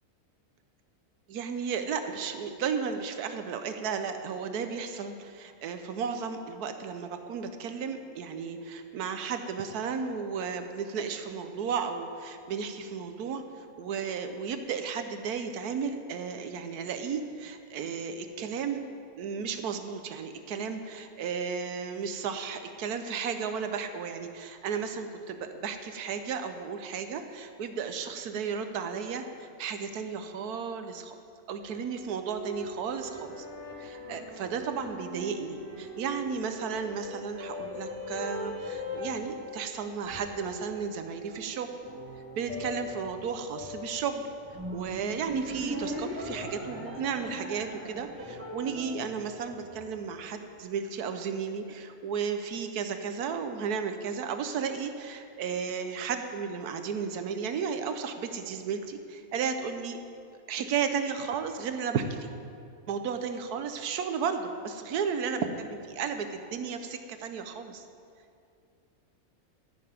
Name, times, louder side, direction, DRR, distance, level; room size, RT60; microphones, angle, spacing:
voice 1, 1.3-18.8 19.2-31.1 31.5-33.5 33.8-41.7 42.3-44.2 44.5-60.0 60.5-62.3 62.9-67.9, right 6 dB, 90° right, 7 dB, 1.3 m, -34 dB
sound 1, 31.6-50.2, left 1 dB, 75° right, 3.4 m, -40 dB
13.5 x 6.8 x 9.3 m, 2.4 s
omnidirectional pair, 1.6 m